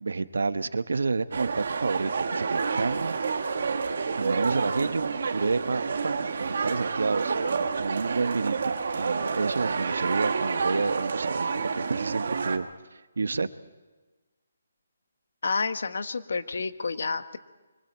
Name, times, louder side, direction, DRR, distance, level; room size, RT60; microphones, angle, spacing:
voice 1, 0.0-3.2 4.1-13.5, right 4 dB, 75° right, 12 dB, 1.1 m, -30 dB
sound 1, 1.3-12.6, right 5 dB, 50° right, 1.7 m, -29 dB
voice 2, 15.4-17.4, left 4 dB, 60° left, 10 dB, 1.3 m, -29 dB
26.5 x 24.5 x 4.5 m, 1.2 s
hypercardioid pair, 180°, 0 cm